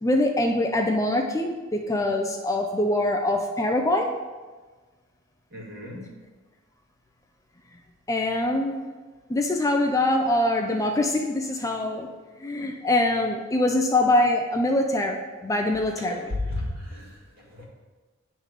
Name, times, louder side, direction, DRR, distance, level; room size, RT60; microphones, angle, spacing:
voice 1, 0.0-4.1 8.1-8.8 9.3-12.1 12.4-16.3, left 1 dB, 15° left, 2 dB, 0.4 m, -24 dB
voice 2, 5.5-6.1 16.0-17.6, left 2 dB, 50° right, -3 dB, 1.6 m, -34 dB
9.3 x 3.3 x 4.8 m, 1.3 s
head